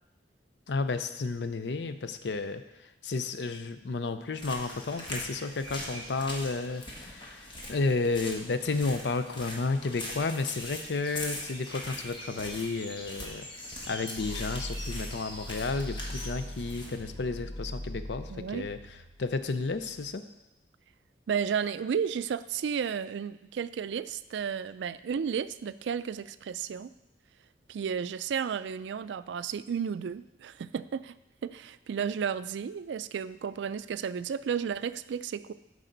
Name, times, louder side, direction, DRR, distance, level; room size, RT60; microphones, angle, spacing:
voice 1, 0.7-13.5 13.9-18.8 19.2-20.2, left 3 dB, 75° left, 10 dB, 0.6 m, -32 dB
sound 1, 4.4-17.0, left 1 dB, 30° left, 1.4 m, -41 dB
sound 2, 14.2-20.1, equal, 55° left, 1.2 m, -41 dB
voice 2, 18.3-18.7 21.3-26.9 27.7-31.2 31.4-35.5, right 7 dB, 85° right, 15 dB, 0.3 m, -33 dB
12.0 x 4.9 x 3.9 m, 0.94 s
head